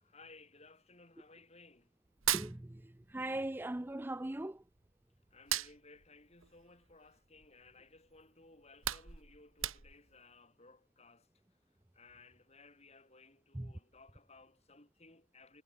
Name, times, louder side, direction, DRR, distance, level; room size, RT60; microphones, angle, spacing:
voice 1, 0.0-1.9 5.3-11.3 11.9-15.6, left 3 dB, 30° left, 4.9 m, -60 dB
Hands, 2.1-3.4 3.6-4.9 5.3-7.6 8.1-8.2 8.6-10.2, right 12 dB, 85° right, 2.3 m, -38 dB
voice 2, 2.3-4.6 13.5-13.7, right 1 dB, 10° right, 0.4 m, -40 dB
head